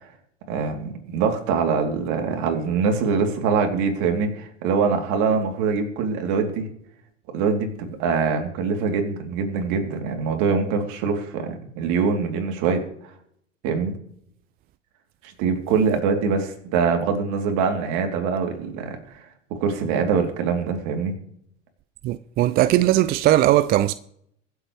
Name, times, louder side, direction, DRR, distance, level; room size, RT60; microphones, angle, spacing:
voice 1, 0.5-6.7 7.3-12.8 13.6-13.9 15.2-19.0 19.6-21.1, right 5 dB, 50° right, 3.0 m, -23 dB
voice 2, 22.0-23.9, right 14 dB, 25° right, 0.4 m, -19 dB
24.0 x 8.2 x 3.2 m
hypercardioid pair, 90°, 38 cm